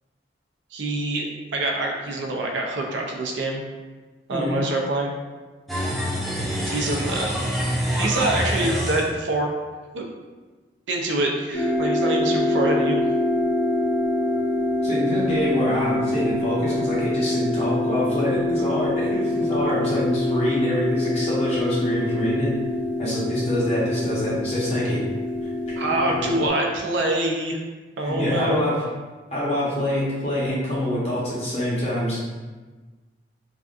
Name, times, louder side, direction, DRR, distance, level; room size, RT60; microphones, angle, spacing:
voice 1, 0.7-3.6 4.3-5.1 6.7-7.4 8.0-9.5 9.9-10.0 10.9-13.0 25.8-27.6 28.0-28.6, right 2 dB, 75° right, 0 dB, 0.5 m, -25 dB
voice 2, 4.3-4.6 14.8-22.5 23.0-25.0 28.0-28.7 29.3-32.2, left 1 dB, 35° left, -8 dB, 0.9 m, -25 dB
sound 1, 5.7-9.1, equal, ahead, 0.4 m, -26 dB
sound 2, 11.5-26.5, left 2 dB, 75° left, 0.8 m, -25 dB
3.4 x 2.5 x 2.4 m, 1.3 s
head